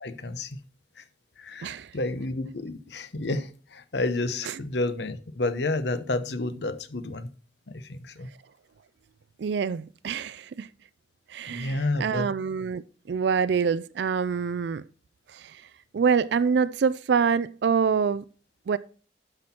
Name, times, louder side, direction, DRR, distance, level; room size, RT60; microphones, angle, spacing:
voice 1, 0.0-0.6 1.0-1.1 1.4-7.3 7.7-8.3 11.5-12.3, left 2 dB, 70° left, 0.9 m, -30 dB
voice 2, 1.6-1.9 9.4-10.7 11.3-14.8 15.3-15.6 15.9-18.2 18.7-18.8, right 6 dB, 70° right, 0.4 m, -26 dB
11.5 x 5.9 x 4.3 m
head